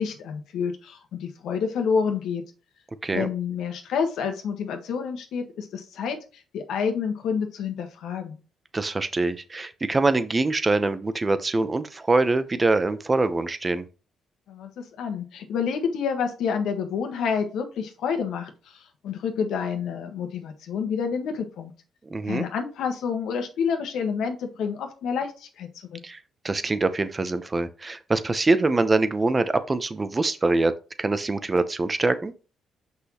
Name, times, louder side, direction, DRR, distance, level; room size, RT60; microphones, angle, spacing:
voice 1, 0.0-2.4 3.1-8.4 14.5-21.7 22.3-26.0, left 6 dB, 80° left, 1.4 m, -28 dB
voice 2, 8.7-13.8 22.1-22.5 26.0-26.2 26.4-32.3, right 3 dB, 25° right, 0.8 m, -24 dB
6.1 x 5.6 x 2.9 m
cardioid pair, 90°, 0 cm